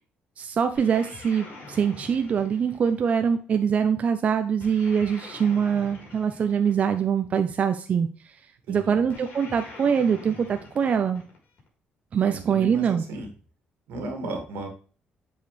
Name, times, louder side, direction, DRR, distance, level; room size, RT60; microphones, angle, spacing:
voice 1, 0.4-8.1 8.7-11.2 12.1-13.0, right 7 dB, 40° right, 7 dB, 0.6 m, -23 dB
sound 1, 0.7-3.4 4.6-7.2 9.1-11.7, left 3 dB, 60° left, 3.8 m, -45 dB
voice 2, 8.7-9.0 12.2-13.3 13.9-14.7, right 1 dB, 85° right, 4 dB, 2.1 m, -35 dB
7.9 x 4.8 x 3.3 m, 0.40 s
cardioid pair, 120°, 3 cm